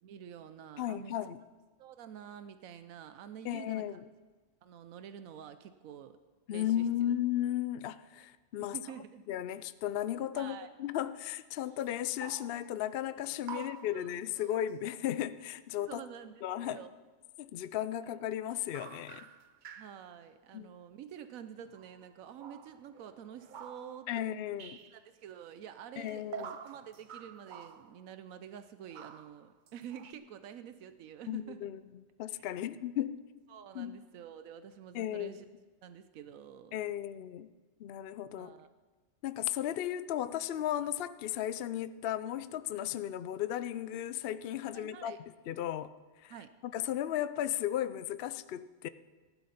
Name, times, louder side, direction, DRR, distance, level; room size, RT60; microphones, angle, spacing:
voice 1, 0.0-1.1 1.8-4.0 4.6-6.2 6.5-7.1 8.6-9.3 10.3-10.7 13.5-14.6 15.9-16.9 19.7-24.2 24.9-31.7 32.3-32.5 33.5-35.4 35.8-36.8 38.4-38.7 44.7-45.2 46.3-46.5, right 9 dB, 90° right, 1.1 m, -48 dB
voice 2, 0.8-1.4 3.4-4.0 6.5-8.8 9.3-16.0 16.4-16.8 17.4-19.2 20.5-20.7 24.1-24.8 26.0-26.5 31.3-31.8 32.2-33.2 33.7-34.0 34.9-35.4 36.7-37.5 37.8-38.5 39.2-45.2 45.5-45.9 46.2-46.3 46.6-48.9, left 11 dB, 60° left, 0.6 m, -35 dB
sound 1, 11.8-11.9 12.2-12.8 13.2-14.7 18.6-20.1 21.6-22.1 22.4-24.2 24.6-25.0 26.1-28.1 28.9-30.1, right 7 dB, 50° right, 0.6 m, -48 dB
15.0 x 11.5 x 5.7 m
omnidirectional pair, 1.4 m